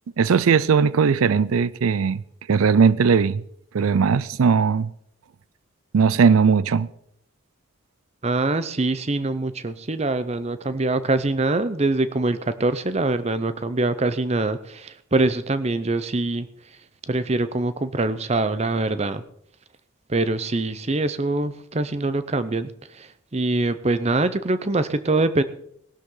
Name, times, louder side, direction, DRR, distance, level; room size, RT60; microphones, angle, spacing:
voice 1, 0.2-2.2 2.5-3.4 3.7-4.9 5.9-6.9, right 6 dB, 85° right, 0.4 m, -18 dB
voice 2, 8.2-16.5 17.1-19.2 20.1-23.1 23.3-25.4, right 2 dB, 30° right, 0.7 m, -24 dB
19.0 x 12.0 x 3.9 m
head